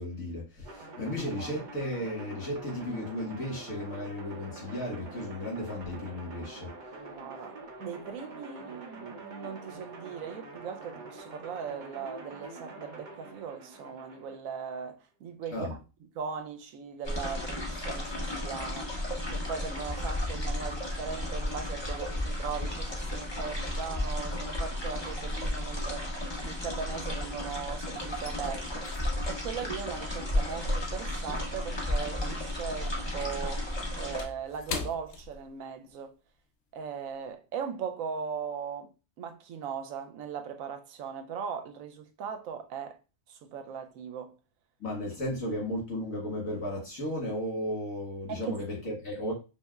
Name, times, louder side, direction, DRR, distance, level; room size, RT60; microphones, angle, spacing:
voice 1, 0.0-6.7 15.5-15.7 44.8-49.3, left 1 dB, 85° left, 2.0 m, -34 dB
sound 1, 0.6-14.4, right 2 dB, 45° right, 0.7 m, -46 dB
voice 2, 7.0-15.7 16.2-26.1 26.4-28.9 29.2-36.1 36.7-38.9 39.2-43.0 43.3-44.3 48.3-48.6, right 6 dB, 85° right, 1.0 m, -39 dB
sound 2, 17.0-34.2, left 1 dB, 25° left, 0.7 m, -33 dB
sound 3, 24.7-25.2 25.5-27.5 27.8-32.4 32.7-36.0 36.3-36.5 37.0-37.3, left 5 dB, 60° left, 0.8 m, -44 dB
5.2 x 2.0 x 2.3 m
omnidirectional pair, 1.4 m